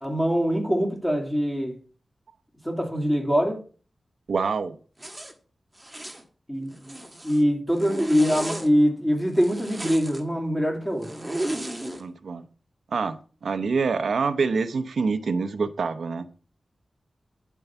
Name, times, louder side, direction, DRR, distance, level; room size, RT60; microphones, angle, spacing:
voice 1, 0.0-1.8 2.6-3.6 6.5-7.0 7.2-11.1, equal, 10° left, 2.6 m, -23 dB
voice 2, 4.3-4.8 12.0-12.5 12.9-16.3, right 4 dB, 85° right, 0.7 m, -26 dB
Zipper (clothing), 5.0-5.3 5.8-6.2 6.7-7.4 7.8-8.7 9.3-10.2 11.0-12.0, right 1 dB, 10° right, 1.5 m, -33 dB
9.8 x 4.6 x 6.9 m
wide cardioid pair, 110°, 0 cm